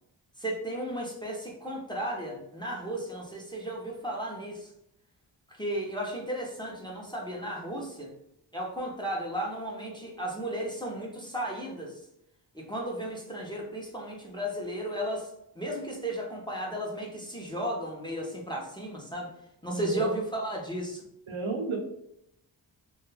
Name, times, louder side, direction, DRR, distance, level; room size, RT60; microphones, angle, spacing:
voice 1, 0.4-4.7 5.5-8.1 8.5-12.0 12.5-19.3 19.6-21.0, right 1 dB, 10° left, -2 dB, 0.6 m, -34 dB
voice 2, 19.7-20.1 21.3-21.8, right 4 dB, 80° right, 1 dB, 0.7 m, -32 dB
2.2 x 2.1 x 3.1 m, 0.78 s
wide cardioid pair, 60°, 48 cm